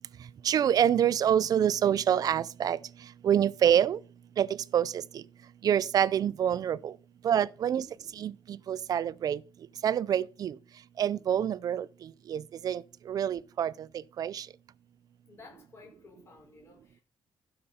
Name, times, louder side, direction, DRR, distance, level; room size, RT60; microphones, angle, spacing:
voice 1, 0.4-2.8 3.2-4.0 4.4-4.5 4.7-5.0 5.6-6.9 7.2-7.9 8.2-8.3 8.7-9.4 9.8-10.5 11.0-11.9 12.3-12.8 13.1-13.7 14.2-14.5, right 9 dB, 50° right, 0.4 m, -26 dB
voice 2, 15.2-17.0, left 3 dB, 30° left, 5.2 m, -54 dB
15.5 x 6.7 x 4.3 m
cardioid pair, 160°, 8 cm